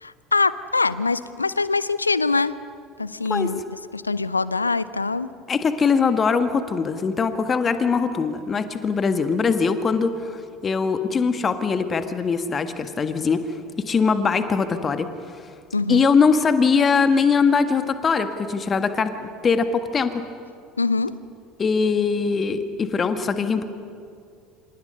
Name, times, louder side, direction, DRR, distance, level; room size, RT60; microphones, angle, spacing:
voice 1, 0.0-2.5 3.0-3.6 3.9-5.3 15.7-16.1 20.8-21.1, left 3 dB, 85° left, 17 dB, 0.6 m, -23 dB
voice 2, 5.5-13.4 13.8-15.1 15.9-19.1 19.4-20.2 21.6-23.6, left 5 dB, 30° left, 9 dB, 1.6 m, -21 dB
27.5 x 26.5 x 5.5 m, 2.3 s
figure-of-eight pair, 65°, 0 cm